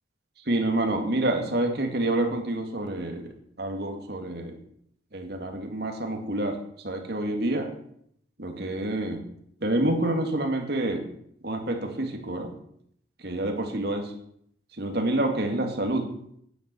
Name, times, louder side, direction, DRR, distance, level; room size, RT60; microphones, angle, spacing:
voice 1, 0.5-3.3 3.6-4.6 5.1-6.6 6.8-7.7 8.4-9.2 9.6-11.1 11.4-12.5 13.2-14.1 14.8-16.1, right 1 dB, 55° right, 4 dB, 2.2 m, -27 dB
9.8 x 8.0 x 7.7 m, 0.70 s
head